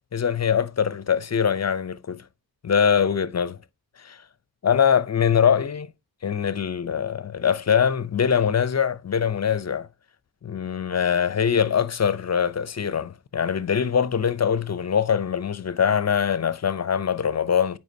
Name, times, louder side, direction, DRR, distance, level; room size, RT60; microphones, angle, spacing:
voice 1, 0.1-2.2 2.6-3.6 4.0-4.2 4.6-5.9 6.2-9.9 10.4-17.8, left 7 dB, 45° left, 0.5 m, -23 dB
8.0 x 4.7 x 2.6 m
wide cardioid pair, 70°, 39 cm